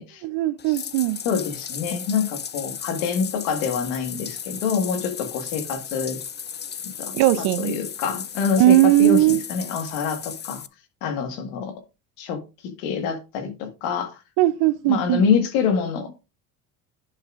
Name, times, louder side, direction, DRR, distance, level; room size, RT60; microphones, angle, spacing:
voice 1, 0.2-1.2 7.1-7.7 8.6-9.4 14.4-15.2, right 16 dB, 70° right, 0.8 m, -18 dB
Bathtub (filling or washing), 0.6-10.7, left 7 dB, 25° left, 0.6 m, -35 dB
voice 2, 1.3-6.2 6.8-7.1 7.6-9.2 9.5-10.6 11.0-11.7 12.2-12.4 12.8-14.2 14.9-16.3, left 6 dB, 80° left, 1.9 m, -26 dB
10.5 x 6.5 x 2.6 m
supercardioid pair, 75°, 41 cm